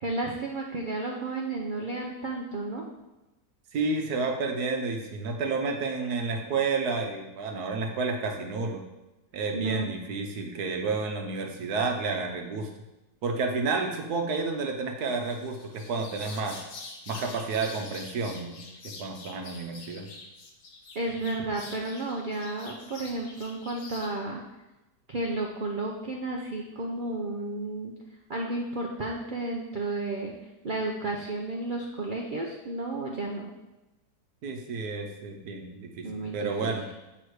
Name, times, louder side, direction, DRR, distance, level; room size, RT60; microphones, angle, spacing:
voice 1, 0.0-2.8 9.5-9.9 20.9-24.4 25.1-27.9 28.3-30.3 30.6-33.5 36.0-36.7, right 2 dB, 50° right, -1 dB, 0.6 m, -32 dB
voice 2, 3.7-8.8 9.3-12.7 13.2-16.6 17.1-18.6 19.0-20.1 34.4-36.9, right 4 dB, 75° right, 3 dB, 1.3 m, -30 dB
sound 1, 15.2-24.1, left 3 dB, 60° left, 1.3 m, -46 dB
8.0 x 3.6 x 4.7 m, 1.0 s
omnidirectional pair, 1.7 m